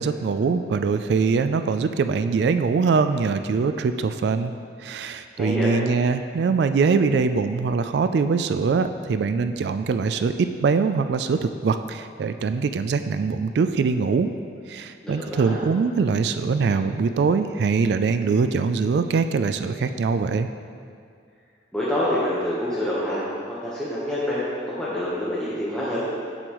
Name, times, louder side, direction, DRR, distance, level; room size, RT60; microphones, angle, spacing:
voice 1, 0.0-4.5 4.8-14.3 14.7-20.5, right 5 dB, 65° right, 9 dB, 0.3 m, -23 dB
voice 2, 5.3-5.7 15.0-15.6 21.7-26.0, left 1 dB, 5° left, -10 dB, 1.0 m, -27 dB
7.9 x 7.8 x 3.0 m, 2.2 s
head